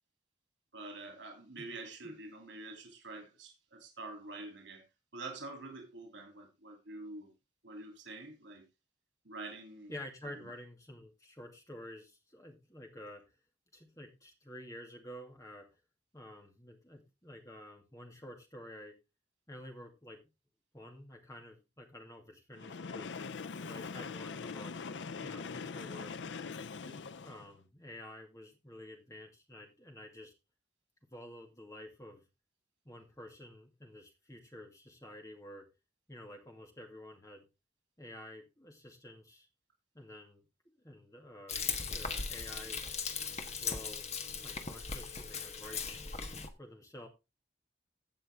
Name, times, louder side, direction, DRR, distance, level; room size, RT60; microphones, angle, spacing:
voice 1, 0.7-4.8 5.1-7.3 7.6-8.7 9.2-9.9 10.2-10.5, right 2 dB, 90° right, 3.0 m, -46 dB
voice 2, 9.9-13.2 13.7-15.7 16.1-19.0 19.5-20.2 20.7-23.1 23.6-24.7 25.2-26.2 26.8-30.3 31.1-32.3 32.8-35.6 36.1-37.5 38.0-39.5 39.9-42.9 43.6-44.1 44.4-46.0 46.6-47.1, left 1 dB, 15° left, 2.4 m, -50 dB
Train, 22.5-27.6, left 5 dB, 80° left, 0.5 m, -42 dB
Frying (food), 41.5-46.5, left 5 dB, 35° left, 1.3 m, -38 dB
16.5 x 5.5 x 3.5 m
head